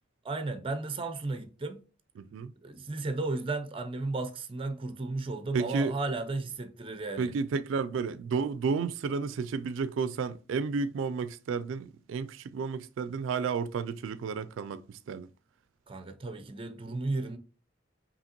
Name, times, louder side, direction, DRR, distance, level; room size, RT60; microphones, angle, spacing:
voice 1, 0.2-1.8 2.6-7.3 15.9-17.4, right 3 dB, 30° right, 0.5 m, -34 dB
voice 2, 2.2-2.5 5.5-5.9 7.2-15.3, right 5 dB, 80° right, 0.3 m, -32 dB
5.1 x 2.9 x 2.9 m
head